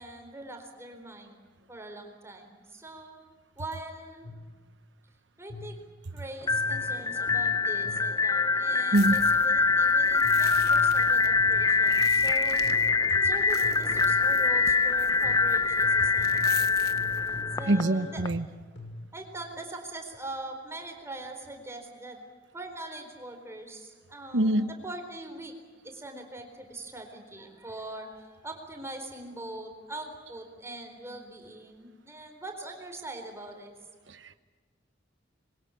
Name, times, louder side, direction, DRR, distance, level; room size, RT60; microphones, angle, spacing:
voice 1, 0.0-3.2 3.6-4.3 5.4-5.8 6.1-12.7 13.2-17.2 17.6-18.2 19.1-22.2 22.5-25.5 25.8-33.7, right 2 dB, 15° right, 4 dB, 4.2 m, -42 dB
sound 1, 4.2-4.6 5.5-5.9 6.5-8.3 9.1-9.5 10.2-12.3 12.6-13.1 13.6-14.4 15.2-19.2, left 2 dB, 80° left, 5.8 m, -43 dB
sound 2, 6.4-18.3, left 4 dB, 20° left, 0.8 m, -24 dB
sound 3, 8.9-17.4, left 7 dB, 60° left, 1.1 m, -45 dB
voice 2, 17.7-18.5 24.3-24.7 34.1-34.4, right 1 dB, 80° right, 10 dB, 1.0 m, -24 dB
26.5 x 22.5 x 8.7 m, 1.5 s
head